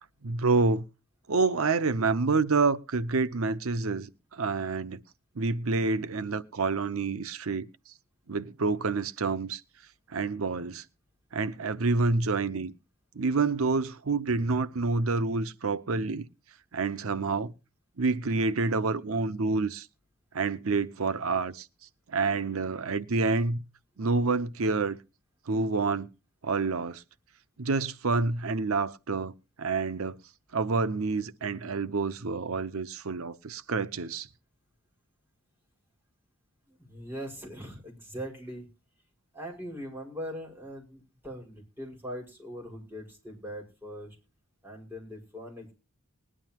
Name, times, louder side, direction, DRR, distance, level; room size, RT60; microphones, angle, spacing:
voice 1, 0.2-0.8 1.3-5.0 5.4-7.9 8.3-9.6 10.1-10.8 11.3-12.7 13.2-16.3 16.7-17.5 18.0-19.9 20.3-21.7 22.1-23.6 24.0-25.0 25.5-26.1 26.4-27.0 27.6-29.3 29.6-30.1 30.5-34.3, right 4 dB, 75° right, 0.7 m, -28 dB
voice 2, 36.7-38.7 39.3-44.2 44.6-45.7, equal, 10° right, 5.5 m, -41 dB
20.5 x 11.0 x 2.9 m
head